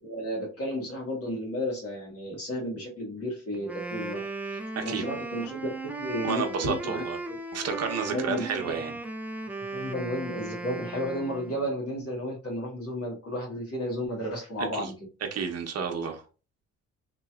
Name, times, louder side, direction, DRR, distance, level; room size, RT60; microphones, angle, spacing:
voice 1, 0.0-4.2 4.5-5.7 6.0-7.0 7.3-7.4 8.1-8.7 9.7-14.9, equal, 50° left, 1.4 m, -33 dB
Wind instrument woodwind instrument, 3.5-11.7, right 2 dB, 5° right, 0.5 m, -37 dB
voice 2, 4.8-5.1 6.2-7.2 7.5-8.9 14.6-14.9 15.3-16.2, right 6 dB, 55° right, 0.9 m, -31 dB
3.0 x 2.9 x 2.4 m
cardioid pair, 90°, 30 cm